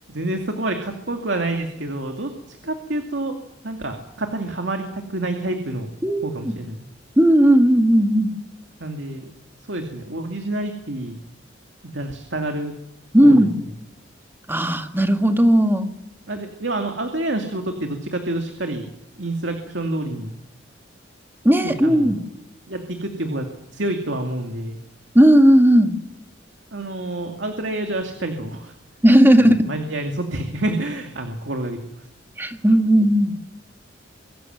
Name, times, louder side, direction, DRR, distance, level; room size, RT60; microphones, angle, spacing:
voice 1, 0.1-3.4 3.6-5.9 6.2-6.8 8.8-9.3 9.7-11.2 11.8-12.7 13.2-13.5 16.3-18.8 19.2-20.3 21.6-22.1 22.7-23.5 23.7-24.8 26.7-28.7 29.6-32.1, right 1 dB, 70° right, 4 dB, 2.5 m, -28 dB
voice 2, 6.0-6.5 7.2-8.3 13.1-13.5 14.5-15.9 21.4-22.2 25.1-26.0 29.0-29.6 32.4-33.3, equal, 10° right, 6 dB, 1.9 m, -15 dB
24.0 x 14.0 x 9.2 m, 0.82 s
head